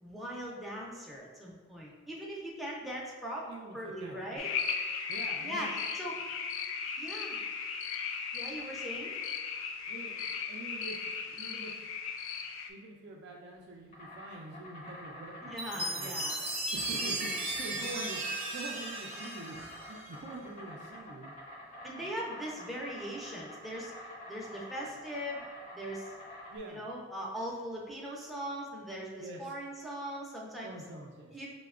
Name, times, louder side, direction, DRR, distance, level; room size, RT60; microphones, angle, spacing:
voice 1, 0.0-3.5 3.7-4.5 5.4-6.2 7.0-7.4 8.3-9.1 15.4-16.4 21.8-23.9 24.3-25.4 25.7-26.1 26.7-30.7 31.3-31.5, equal, ahead, -4 dB, 0.5 m, -40 dB
voice 2, 3.4-4.4 5.1-5.7 9.9-11.0 11.3-11.7 12.7-16.1 16.7-21.3 22.0-22.4 26.5-26.9 29.2-29.5 30.6-31.4, right 2 dB, 60° right, 0 dB, 0.4 m, -45 dB
sound 1, 4.4-12.7, left 6 dB, 75° left, 0.3 m, -37 dB
Insect, 13.5-26.6, left 1 dB, 40° left, 0.7 m, -48 dB
Chime, 15.6-20.2, right 2 dB, 30° right, 0.8 m, -36 dB
5.5 x 2.1 x 2.3 m, 1.4 s
head